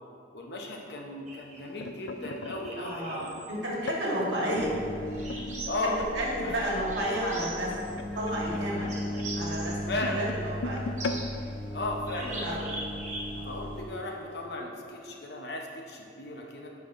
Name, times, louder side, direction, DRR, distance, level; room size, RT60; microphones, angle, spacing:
voice 1, 0.3-3.3 5.7-6.0 6.6-6.7 9.9-10.3 11.7-12.7 13.4-16.7, left 2 dB, 60° left, 1 dB, 0.8 m, -35 dB
sound 1, 1.3-4.6 5.3-12.6 13.0-13.2 13.4-13.7 14.5-14.6, left 2 dB, 85° left, 0.4 m, -40 dB
sound 2, 1.3-1.6 2.2-3.5 5.1-6.0 6.8-8.0 8.9-9.8 11.0-11.5 12.1-13.5, right 2 dB, 40° right, 1.0 m, -41 dB
voice 2, 2.8-4.7 5.8-11.5 12.2-12.7 13.3-13.5, equal, 80° right, -4 dB, 1.5 m, -32 dB
sound 3, 4.5-13.9, left 1 dB, 30° left, 0.7 m, -37 dB
9.4 x 5.4 x 2.6 m, 2.7 s
head